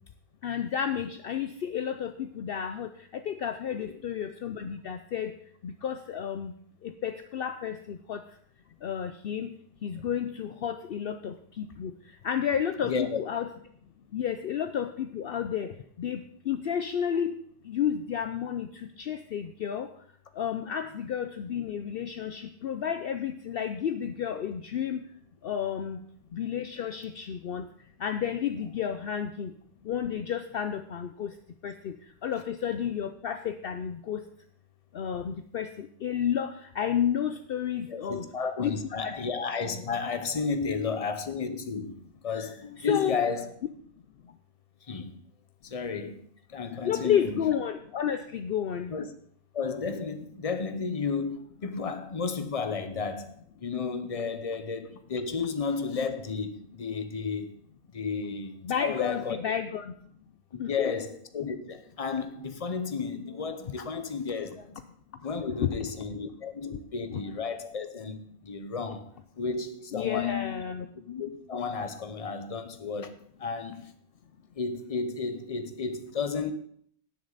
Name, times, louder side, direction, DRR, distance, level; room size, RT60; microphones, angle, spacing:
voice 1, 0.4-5.4 5.6-6.5 6.8-8.2 8.8-9.5 9.8-11.9 12.2-13.5 14.1-16.2 16.5-17.4 17.6-19.9 20.3-25.0 25.4-26.0 26.3-27.7 28.0-29.5 29.8-31.3 31.6-32.0 32.2-34.2 34.9-38.2 38.6-38.7 39.0-39.1 42.8-43.2 46.8-48.9 58.6-59.9 60.6-60.9 65.6-65.9 66.7-66.8 67.1-67.2 69.9-70.9, left 8 dB, 60° left, 0.8 m, -31 dB
voice 2, 12.8-13.2 37.9-42.0 42.2-43.5 44.9-45.2 45.6-47.3 48.9-49.1 49.5-57.6 57.9-59.4 60.5-64.8 65.2-70.6 70.9-73.9 74.5-76.5, left 5 dB, 35° left, 0.9 m, -33 dB
18.5 x 6.6 x 4.0 m
omnidirectional pair, 1.2 m